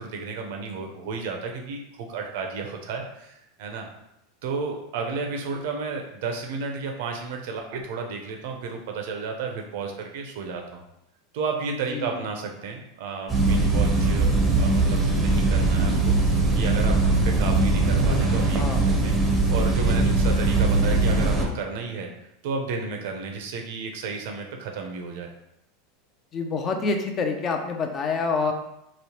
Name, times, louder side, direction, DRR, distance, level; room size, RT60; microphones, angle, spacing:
voice 1, 0.0-3.9 4.4-10.8 11.3-14.3 14.6-16.2 16.5-19.2 19.5-22.1 22.4-25.3, right 4 dB, 70° right, 2 dB, 0.5 m, -32 dB
voice 2, 11.9-12.3 18.6-18.8 26.3-28.5, left 4 dB, 30° left, 5 dB, 0.4 m, -27 dB
sound 1, 13.3-21.5, right 2 dB, 15° right, 0.6 m, -21 dB
3.0 x 2.0 x 2.9 m, 0.84 s
supercardioid pair, 120°, 0 cm